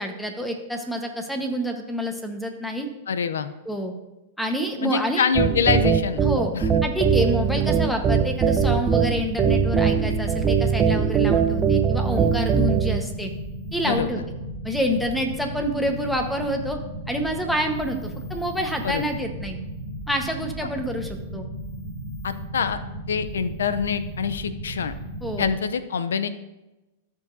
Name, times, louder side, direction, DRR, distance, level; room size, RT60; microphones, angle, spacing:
voice 1, 0.0-2.9 3.6-3.9 4.4-5.3 6.2-6.5 6.8-13.3 13.7-14.2 14.6-16.8 17.1-19.6 20.1-21.5 25.2-25.5, equal, 5° left, 4 dB, 1.1 m, -27 dB
voice 2, 3.1-3.5 4.8-6.2 6.5-6.7 13.8-14.1 18.8-19.0 22.2-22.8 23.1-24.9 25.4-26.3, left 6 dB, 90° left, 12 dB, 0.5 m, -25 dB
sound 1, 5.4-13.0, right 6 dB, 25° right, 0.6 m, -21 dB
sound 2, 8.2-25.5, equal, 55° left, 3.2 m, -35 dB
14.5 x 5.3 x 2.7 m, 1.0 s
hypercardioid pair, 125°, 0 cm